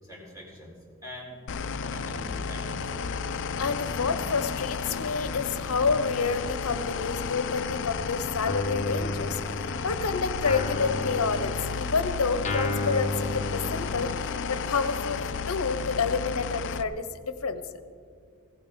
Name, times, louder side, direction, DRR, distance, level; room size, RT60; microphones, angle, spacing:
voice 1, 0.0-0.7 1.0-1.4 1.8-2.8, left 1 dB, 15° right, -4 dB, 4.1 m, -43 dB
sound 1, 1.5-16.8, left 5 dB, 55° left, 0.5 m, -33 dB
sound 2, 3.5-10.2, equal, 10° left, 2.1 m, -44 dB
voice 2, 3.6-9.4 9.8-14.1 14.5-17.8, left 5 dB, 75° left, 11 dB, 0.8 m, -29 dB
Guitar, 8.5-10.0 10.5-14.3, left 2 dB, 35° left, 1.0 m, -33 dB
16.5 x 15.5 x 3.6 m, 2.2 s
head